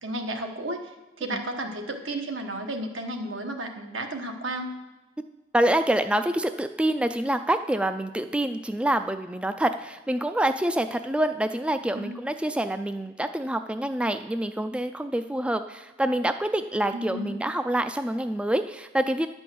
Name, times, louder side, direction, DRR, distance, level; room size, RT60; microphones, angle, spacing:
voice 1, 0.0-0.9 1.2-4.8 11.9-12.2 16.9-17.4, right 1 dB, 85° right, 4 dB, 1.3 m, -33 dB
voice 2, 5.5-19.3, right 1 dB, 5° right, 8 dB, 0.3 m, -26 dB
10.5 x 5.4 x 7.7 m, 1.1 s
head